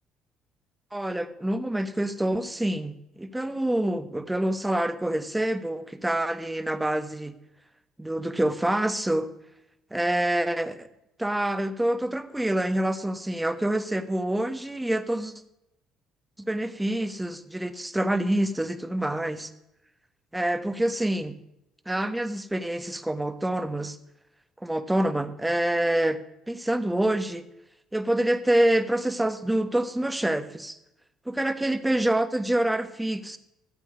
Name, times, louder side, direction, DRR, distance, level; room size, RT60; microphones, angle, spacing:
voice 1, 0.9-7.3 8.0-9.3 9.9-10.9 11.2-15.3 16.4-19.5 20.3-21.4 21.9-24.0 24.6-26.2 26.5-27.4 27.9-30.8 31.3-33.4, right 1 dB, 10° right, 10 dB, 1.3 m, -26 dB
13.0 x 8.4 x 6.2 m, 0.84 s
hypercardioid pair, 65°, 0 cm